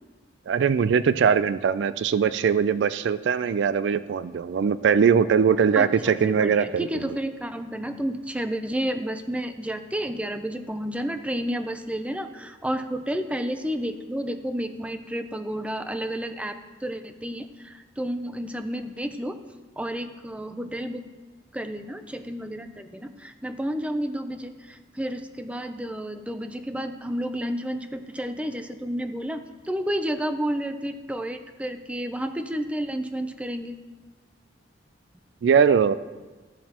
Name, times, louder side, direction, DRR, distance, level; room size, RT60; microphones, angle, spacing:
voice 1, 0.5-7.2 35.4-36.0, right 6 dB, 75° right, 14 dB, 0.3 m, -21 dB
voice 2, 5.8-19.4 19.8-21.0 21.5-33.8, equal, 5° right, 8 dB, 0.5 m, -31 dB
14.5 x 7.3 x 2.9 m, 1.3 s
head